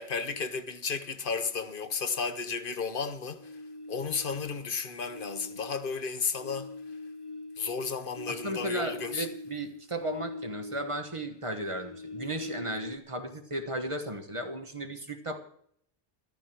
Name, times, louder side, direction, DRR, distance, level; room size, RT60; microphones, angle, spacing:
voice 1, 0.0-3.5 3.9-6.7 7.6-9.3, left 5 dB, 55° left, 1.0 m, -33 dB
sound 1, 3.4-4.7 5.0-11.1 11.4-13.0, left 2 dB, 25° left, 0.8 m, -43 dB
voice 2, 8.3-15.4, right 1 dB, 30° right, 1.3 m, -35 dB
14.0 x 12.0 x 4.5 m
omnidirectional pair, 1.1 m